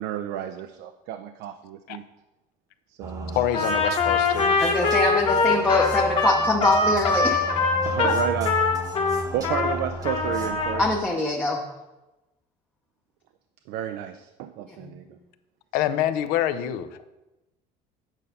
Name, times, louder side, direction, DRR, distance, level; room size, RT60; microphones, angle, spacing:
voice 1, 0.0-2.0 2.9-3.4 7.8-8.5 9.3-10.8 13.7-15.0, right 11 dB, 80° right, 8 dB, 0.5 m, -31 dB
sound 1, 3.0-11.0, equal, 25° right, 0.9 m, -35 dB
voice 2, 3.4-4.6 15.7-17.1, left 11 dB, 75° left, 11 dB, 0.6 m, -26 dB
Trumpet, 3.5-9.7 10.0-10.8, left 3 dB, 35° left, 1.2 m, -23 dB
voice 3, 4.6-7.5 8.0-8.1 10.8-11.6 14.7-14.9, left 2 dB, 10° left, -1 dB, 0.7 m, -23 dB
9.0 x 5.3 x 5.6 m, 1.0 s
cardioid pair, 170°, 15 cm